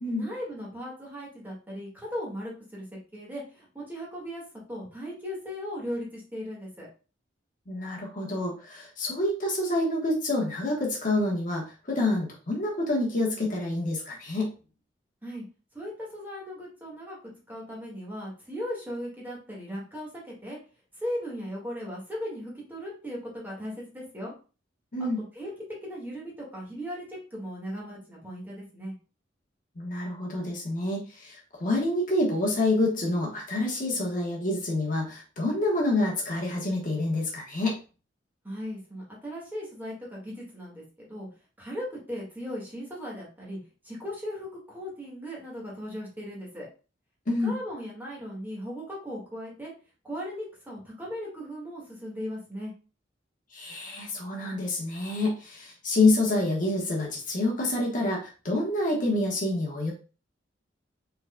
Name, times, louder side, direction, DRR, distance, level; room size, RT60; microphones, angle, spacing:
voice 1, 0.1-2.9 3.1-4.4 4.7-6.9 15.2-15.4 15.7-20.6 21.0-24.3 25.3-25.5 25.8-28.9 38.4-40.8 41.1-41.3 41.6-43.6 43.8-46.7 47.4-49.7 50.0-52.7, equal, 10° right, -4 dB, 1.7 m, -37 dB
voice 2, 7.7-14.5 24.9-25.2 29.8-37.8 47.3-47.6 53.5-59.9, left 2 dB, 45° left, -1 dB, 1.1 m, -27 dB
4.6 x 3.9 x 2.2 m, 0.34 s
head